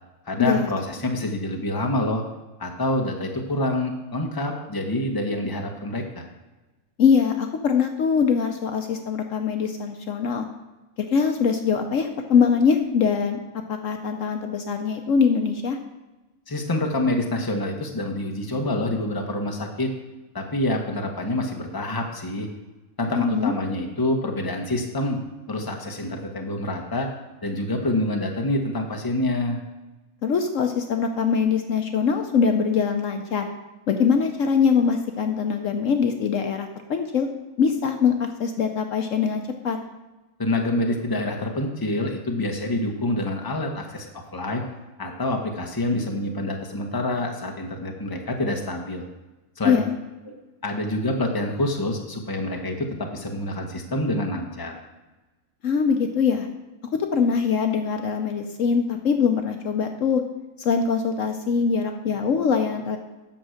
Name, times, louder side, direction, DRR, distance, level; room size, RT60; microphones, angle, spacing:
voice 1, 0.3-2.2 2.6-6.3 16.5-19.9 20.3-22.5 23.0-25.2 25.5-27.1 27.4-29.6 40.4-44.6 45.0-49.0 49.6-49.8 50.6-54.8, left 1 dB, 15° left, 2 dB, 1.1 m, -26 dB
voice 2, 7.0-10.5 11.0-13.4 13.7-15.8 23.2-23.5 30.2-33.5 33.9-37.3 37.6-39.8 49.6-49.9 55.6-56.5 56.8-60.2 60.6-63.0, left 6 dB, 65° left, 5 dB, 1.1 m, -22 dB
9.0 x 6.1 x 6.5 m, 1.1 s
omnidirectional pair, 1.5 m